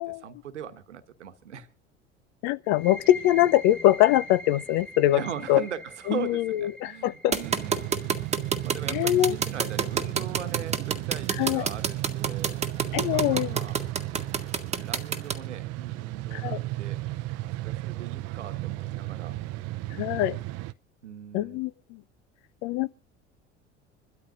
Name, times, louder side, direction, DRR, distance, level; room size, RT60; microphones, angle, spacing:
voice 1, 0.0-1.7 5.1-7.9 8.6-12.6 13.1-13.8 14.1-14.2 14.7-17.0 17.4-19.4 21.0-21.6, right 8 dB, 80° right, 1.3 m, -39 dB
voice 2, 2.4-5.2 5.5-5.6 6.1-7.3 8.9-9.4 11.4-11.7 12.9-13.6 16.3-16.6 19.9-20.4 21.3-22.0 22.6-22.9, left 14 dB, 50° left, 0.7 m, -23 dB
sound 1, 2.6-10.1, equal, ahead, 2.3 m, -44 dB
sound 2, 7.3-15.3, right 6 dB, 20° right, 1.4 m, -27 dB
sound 3, 7.4-20.7, right 17 dB, 45° right, 0.6 m, -34 dB
27.0 x 12.5 x 2.5 m
figure-of-eight pair, 70°, 35 cm